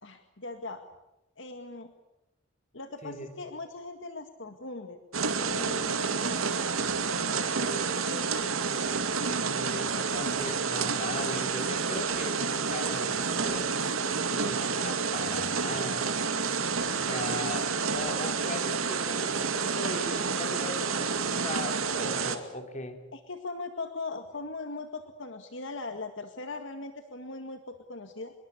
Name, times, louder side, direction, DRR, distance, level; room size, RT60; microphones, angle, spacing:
voice 1, 0.0-0.8 1.4-1.9 2.7-5.0 5.5-6.6 7.1-8.8 11.1-11.3 23.1-28.3, left 3 dB, 60° left, 7 dB, 1.9 m, -40 dB
sound 1, 5.1-22.4, right 5 dB, 90° right, 2.4 m, -29 dB
voice 2, 8.2-8.9 9.2-13.7 14.3-16.1 16.9-23.0, left 2 dB, 35° left, 5 dB, 3.6 m, -39 dB
26.0 x 22.5 x 8.5 m, 0.91 s
head